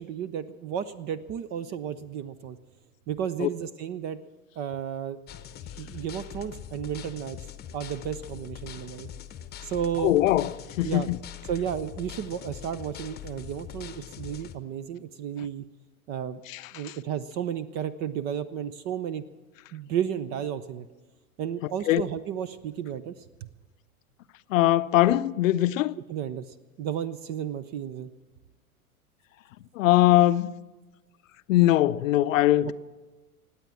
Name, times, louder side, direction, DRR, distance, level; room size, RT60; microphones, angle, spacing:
voice 1, 0.0-2.6 3.1-4.2 4.6-5.2 5.8-7.4 7.7-9.1 9.6-10.1 10.8-11.1 11.5-15.6 16.1-16.4 16.7-19.2 19.7-20.9 21.4-23.1 26.1-28.1, right 9 dB, 25° right, 0.4 m, -33 dB
sound 1, 5.3-14.6, left 10 dB, 20° left, 0.9 m, -42 dB
voice 2, 10.0-10.5 10.8-11.2 16.5-16.9 21.9-22.0 24.5-25.9 29.8-30.6 31.5-32.7, left 14 dB, 60° left, 0.6 m, -21 dB
19.0 x 8.3 x 7.4 m
hypercardioid pair, 100°, 44 cm